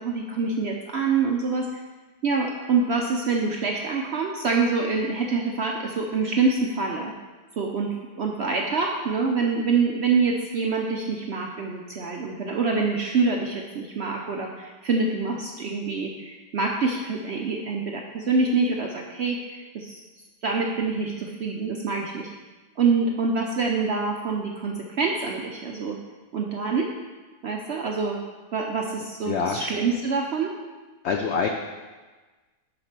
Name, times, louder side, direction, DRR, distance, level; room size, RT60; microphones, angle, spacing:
voice 1, 0.0-1.8 2.2-7.1 7.6-20.0 20.4-22.3 22.8-26.0 26.3-26.9 27.4-28.2 28.5-30.5, right 4 dB, 70° right, 0 dB, 0.6 m, -26 dB
voice 2, 29.2-29.6 31.0-31.5, left 5 dB, 90° left, 3 dB, 0.5 m, -25 dB
6.5 x 4.3 x 5.9 m, 1.3 s
omnidirectional pair, 1.7 m